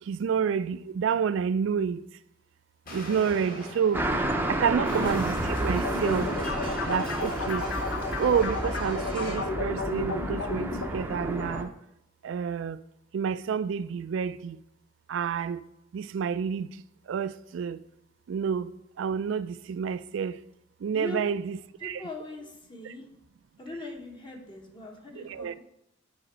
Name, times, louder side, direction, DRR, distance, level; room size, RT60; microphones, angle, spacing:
voice 1, 0.0-2.0 2.9-4.1 4.5-6.3 6.8-7.7 8.2-11.7 12.2-12.8 13.1-14.6 15.1-15.6 15.9-16.8 17.1-17.8 18.3-18.7 19.0-20.4 20.8-22.0 22.8-22.9 25.2-25.5, right 7 dB, 65° right, 0.3 m, -29 dB
Explosion, 2.9-9.5, equal, 45° left, 1.7 m, -42 dB
sound 1, 3.9-11.6, right 1 dB, 10° right, 0.5 m, -31 dB
voice 2, 4.6-4.9 20.9-21.2 21.8-23.1 23.6-25.6, left 2 dB, 25° left, 0.9 m, -41 dB
sound 2, 5.7-10.9, left 4 dB, 70° left, 0.7 m, -33 dB
6.3 x 5.1 x 4.4 m
head